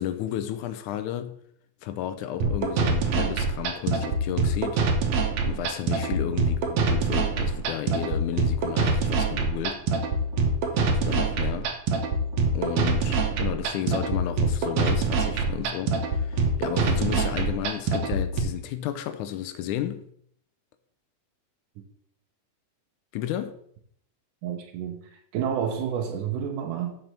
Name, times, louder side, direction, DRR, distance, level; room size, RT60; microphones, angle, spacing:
voice 1, 0.0-1.4 1.8-4.8 5.4-9.9 10.7-11.7 12.5-20.1 23.1-23.6, left 11 dB, 80° left, 2.0 m, -32 dB
sound 1, 2.4-18.4, right 3 dB, 70° right, 2.1 m, -25 dB
voice 2, 24.4-27.0, right 8 dB, 85° right, 2.4 m, -30 dB
6.0 x 5.6 x 6.6 m
omnidirectional pair, 3.6 m